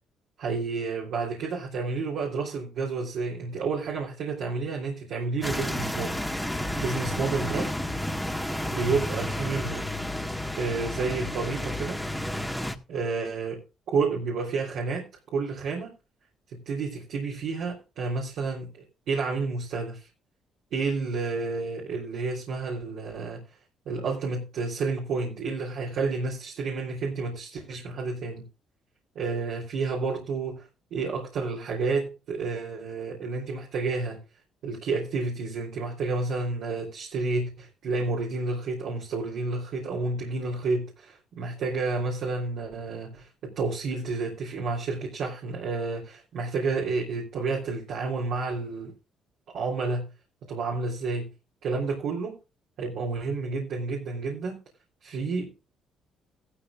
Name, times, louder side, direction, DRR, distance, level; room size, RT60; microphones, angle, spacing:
voice 1, 0.4-7.7 8.7-9.9 10.6-12.0 12.9-13.6 13.9-15.1 15.3-15.9 16.5-20.1 20.7-23.4 23.9-28.4 29.2-34.2 34.6-48.9 49.5-50.1 50.5-51.3 51.6-52.3 52.8-54.6 55.0-55.5, right 4 dB, 70° right, 3.5 m, -30 dB
sound 1, 5.4-12.7, left 1 dB, ahead, 1.7 m, -31 dB
14.5 x 13.0 x 2.5 m
supercardioid pair, 60°, 0 cm